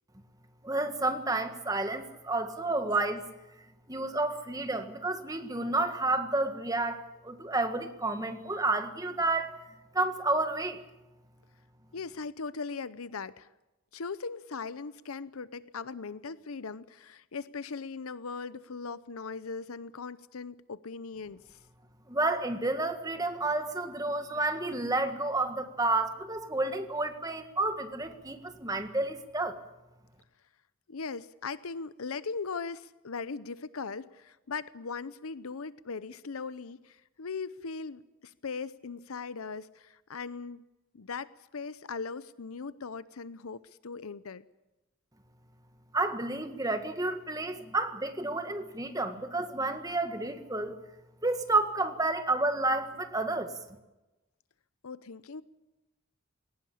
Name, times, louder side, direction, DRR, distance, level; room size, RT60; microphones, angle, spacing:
voice 1, 0.6-3.3 3.9-9.6 9.9-10.8 22.1-29.6 45.9-50.8 51.2-53.5, right 2 dB, 15° right, 7 dB, 1.7 m, -30 dB
voice 2, 11.9-13.5 13.9-21.6 30.9-40.6 40.9-44.4 54.8-55.4, left 4 dB, 85° left, 16 dB, 0.7 m, -39 dB
21.5 x 18.5 x 8.6 m, 1.0 s
head